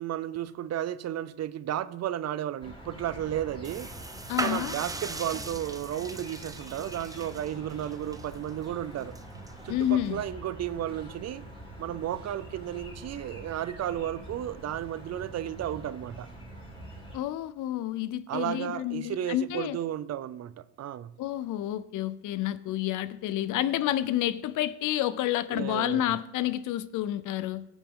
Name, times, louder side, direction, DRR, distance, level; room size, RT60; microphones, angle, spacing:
voice 1, 0.0-3.9 4.4-9.1 9.6-11.5 11.8-16.3 18.3-20.5 20.8-21.1 25.5-26.2, right 11 dB, 60° right, 0.6 m, -33 dB
sound 1, 2.6-17.2, right 1 dB, 15° left, 4.9 m, -45 dB
sound 2, 3.6-10.3, right 2 dB, 10° right, 0.7 m, -40 dB
voice 2, 4.3-4.7 9.7-10.2 17.1-19.8 21.2-27.7, left 13 dB, 80° left, 0.6 m, -29 dB
17.5 x 7.2 x 3.7 m
cardioid pair, 90°, 30 cm